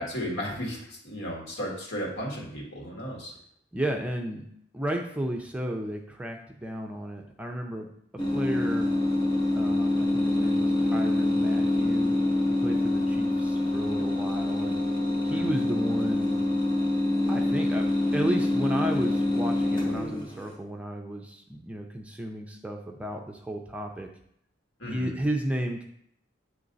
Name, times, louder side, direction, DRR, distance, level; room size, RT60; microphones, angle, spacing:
voice 1, 0.0-3.3 15.3-15.5 24.8-25.1, equal, 85° left, -2 dB, 1.8 m, -34 dB
voice 2, 3.7-4.5 4.7-7.9 8.3-8.9 9.6-12.1 12.6-14.8 15.2-16.4 17.3-17.9 18.1-24.1 24.9-25.8, right 1 dB, 5° right, 2 dB, 0.4 m, -33 dB
sound 1, 8.2-20.5, left 2 dB, 25° left, 1.0 m, -26 dB
8.7 x 3.1 x 4.0 m, 0.71 s
head